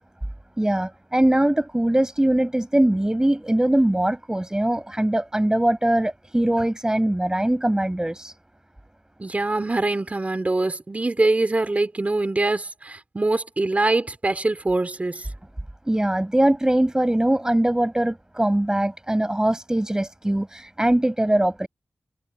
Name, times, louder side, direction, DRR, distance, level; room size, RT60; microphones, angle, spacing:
voice 1, 0.6-8.3 15.9-21.7, right 1 dB, 15° right, 7.1 m, -21 dB
voice 2, 9.2-15.3, right 2 dB, 35° right, 4.1 m, -23 dB
wide cardioid pair, 65°, 4 cm